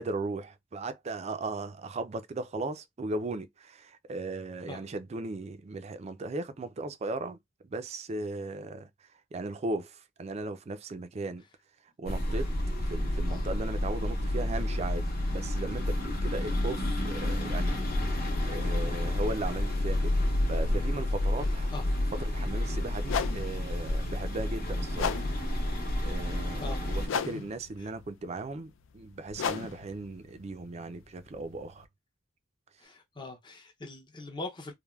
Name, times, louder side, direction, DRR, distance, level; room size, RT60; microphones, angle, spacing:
voice 1, 0.0-7.4 7.6-11.4 12.0-12.5 12.8-20.2 20.5-21.9 22.2-25.2 25.7-31.9, right 2 dB, 35° right, 0.4 m, -37 dB
sound 1, 12.1-27.1, left 1 dB, 50° left, 0.8 m, -30 dB
sound 2, 23.0-31.8, left 6 dB, 75° left, 0.4 m, -37 dB
voice 2, 26.1-26.8 27.8-27.9 32.8-34.7, left 3 dB, 25° left, 0.5 m, -42 dB
3.2 x 2.2 x 2.3 m
head